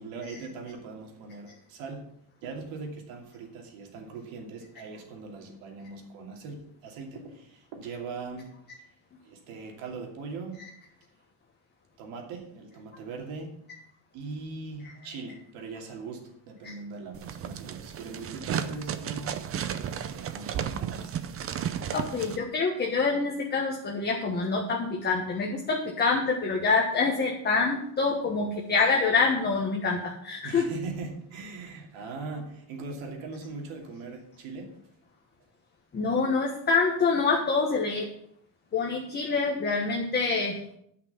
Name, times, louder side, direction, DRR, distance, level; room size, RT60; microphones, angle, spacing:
voice 1, 0.0-2.1 2.4-8.5 9.2-10.6 12.0-13.6 14.1-19.4 19.8-21.2 30.4-34.7, right 4 dB, 75° right, 2 dB, 2.8 m, -40 dB
sound 1, 17.1-22.4, right 8 dB, 30° right, 0.6 m, -33 dB
voice 2, 21.9-30.7 35.9-38.1 38.7-40.6, left 4 dB, 20° left, -1 dB, 1.3 m, -26 dB
10.5 x 5.9 x 7.2 m, 0.70 s
cardioid pair, 150°, 48 cm